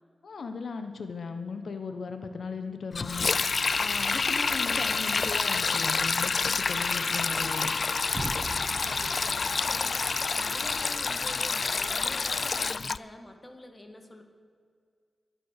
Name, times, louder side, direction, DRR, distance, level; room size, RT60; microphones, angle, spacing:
voice 1, 0.2-3.3 3.8-7.7, left 4 dB, 80° left, 7 dB, 1.0 m, -37 dB
Sink (filling or washing), 2.9-13.0, left 4 dB, 55° left, 0.3 m, -28 dB
Low Pitched Boom Noise, 8.1-12.1, right 3 dB, 45° right, 0.6 m, -42 dB
voice 2, 8.6-14.2, left 1 dB, 25° left, 5 dB, 1.7 m, -46 dB
22.5 x 7.7 x 6.6 m, 2.1 s
wide cardioid pair, 100°, 0 cm